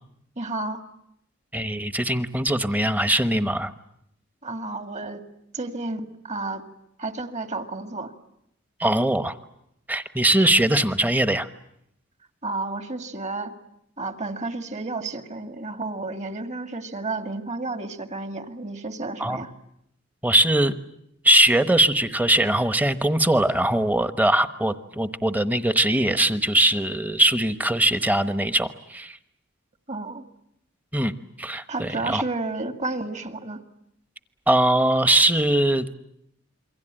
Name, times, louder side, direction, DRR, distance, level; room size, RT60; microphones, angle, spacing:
voice 1, 0.4-0.8 4.4-5.2 5.5-6.6 7.0-8.1 12.4-13.6 14.0-19.5 29.9-30.2 31.7-33.6, right 3 dB, 35° right, 8 dB, 2.0 m, -31 dB
voice 2, 1.5-3.7 8.8-9.4 9.9-11.5 19.2-19.4 20.2-20.8 21.2-29.2 30.9-31.1 31.4-32.2 34.5-35.9, right 1 dB, 10° right, 11 dB, 1.1 m, -21 dB
28.0 x 23.5 x 8.9 m, 0.76 s
head